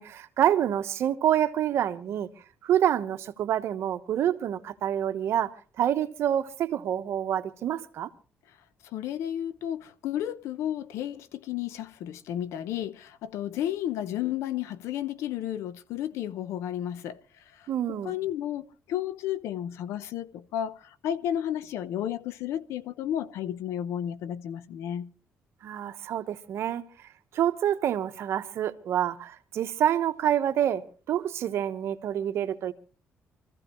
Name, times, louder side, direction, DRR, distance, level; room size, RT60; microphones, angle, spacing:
voice 1, 0.0-2.3 2.6-8.1 17.7-18.1 25.6-26.8 27.3-32.7, right 10 dB, 65° right, 1.1 m, -27 dB
voice 2, 8.9-17.2 17.5-17.7 18.0-25.1, left 11 dB, 90° left, 0.8 m, -32 dB
25.0 x 14.5 x 3.1 m
cardioid pair, 120°, 5 cm